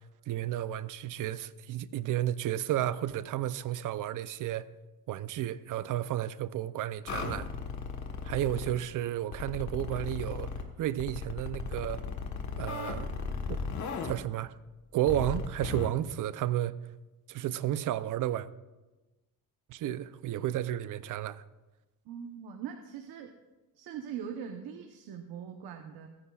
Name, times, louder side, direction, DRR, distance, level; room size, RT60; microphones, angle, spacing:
voice 1, 0.3-4.7 5.1-7.5 8.2-10.5 10.8-12.0 12.6-13.1 13.5-13.6 14.0-14.5 14.9-16.7 17.3-18.5 19.7-21.4, right 12 dB, 55° right, 0.6 m, -32 dB
sound 1, 7.1-8.7 9.3-10.6 11.0-14.1 15.1-15.9, left 5 dB, 50° left, 1.3 m, -36 dB
voice 2, 22.1-23.3 23.7-26.1, right 8 dB, 80° right, 1.0 m, -41 dB
28.0 x 9.8 x 2.4 m
cardioid pair, 145°, 37 cm